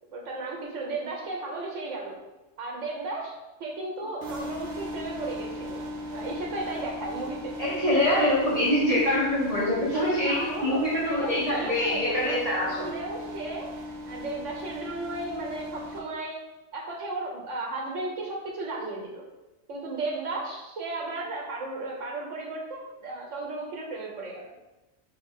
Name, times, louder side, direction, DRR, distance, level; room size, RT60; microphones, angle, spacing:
voice 1, 0.1-2.2 2.6-3.3 3.6-5.8 6.1-7.5 8.0-8.3 9.9-13.7 14.1-16.4 16.7-19.2 19.7-24.5, right 2 dB, 75° right, -1 dB, 1.3 m, -34 dB
sound 1, 4.2-16.0, left 1 dB, 55° right, 1.0 m, -38 dB
voice 2, 7.6-12.9, left 1 dB, 35° right, -7 dB, 0.9 m, -25 dB
6.1 x 2.4 x 3.6 m, 1.0 s
omnidirectional pair, 1.3 m